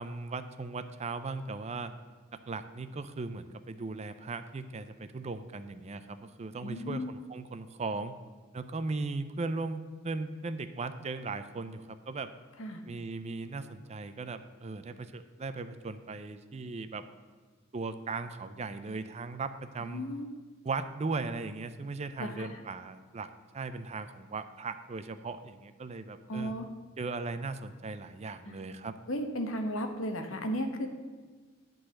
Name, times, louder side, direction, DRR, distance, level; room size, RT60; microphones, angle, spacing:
voice 1, 0.0-1.9 2.3-8.1 8.5-12.3 12.8-17.0 17.7-20.0 20.6-26.5 27.0-29.0, right 3 dB, 30° right, 11 dB, 0.4 m, -38 dB
voice 2, 6.6-7.1 12.6-12.8 19.8-20.3 22.2-22.5 26.3-26.7 28.5-28.6 29.1-30.9, equal, 70° left, 5 dB, 1.1 m, -34 dB
11.0 x 4.0 x 7.7 m, 1.4 s
head